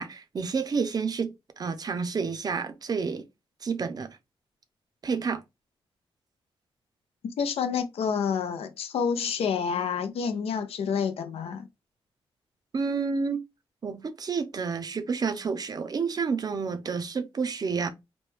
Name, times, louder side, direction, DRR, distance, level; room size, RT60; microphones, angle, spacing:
voice 1, 0.0-3.2 3.6-4.1 5.0-5.4 12.7-13.4 13.8-17.9, right 5 dB, 40° right, 0.5 m, -29 dB
voice 2, 7.4-11.7, left 6 dB, 85° left, 0.5 m, -28 dB
3.0 x 2.2 x 3.1 m
cardioid pair, 105°, 10 cm